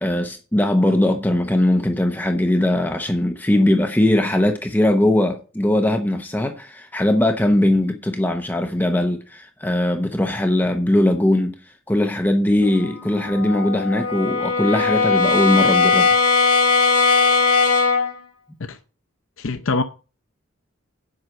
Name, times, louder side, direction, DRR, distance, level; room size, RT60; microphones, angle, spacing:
voice 1, 0.0-11.6 11.9-16.1, left 1 dB, 10° left, 0.8 m, -20 dB
Brass instrument, 12.6-18.2, left 4 dB, 85° left, 2.2 m, -19 dB
voice 2, 19.4-19.8, left 3 dB, 70° left, 0.7 m, -23 dB
7.7 x 5.7 x 7.7 m
head